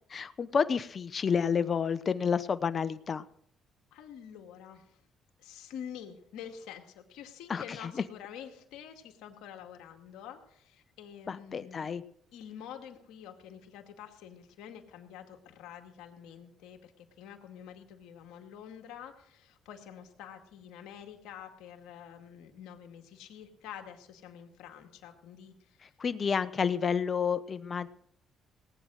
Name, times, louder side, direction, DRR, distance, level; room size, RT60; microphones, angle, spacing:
voice 1, 0.1-3.2 7.5-7.9 11.3-12.0 26.0-27.9, left 6 dB, 45° left, 14 dB, 0.9 m, -30 dB
voice 2, 3.9-5.0 5.4-11.9 12.3-25.9, left 9 dB, 80° left, 4 dB, 2.2 m, -47 dB
18.5 x 9.0 x 6.4 m, 0.70 s
supercardioid pair, 75°, 0 cm